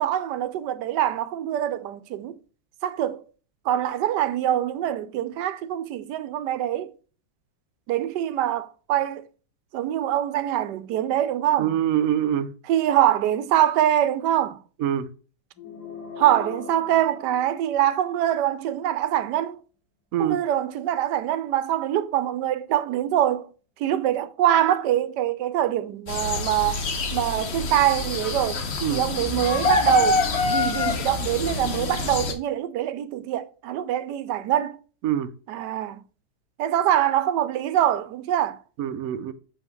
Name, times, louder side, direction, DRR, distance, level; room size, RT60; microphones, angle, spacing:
voice 1, 0.0-2.4 2.8-3.2 3.6-6.9 7.9-9.3 9.7-11.8 12.7-14.6 16.2-19.6 20.2-23.5 23.8-26.8 27.1-28.6 28.9-30.2 30.5-34.8 35.5-36.0 36.6-38.6, right 11 dB, 85° right, 1.2 m, -24 dB
voice 2, 11.6-12.5 14.8-15.1 20.1-20.4 28.8-29.0 35.0-35.3 38.8-39.3, right 10 dB, 65° right, 1.0 m, -24 dB
sound 1, 15.5-18.2, left 5 dB, 75° left, 2.5 m, -40 dB
sound 2, 26.1-32.3, left 3 dB, 45° left, 1.0 m, -26 dB
6.5 x 5.7 x 3.0 m
omnidirectional pair, 1.8 m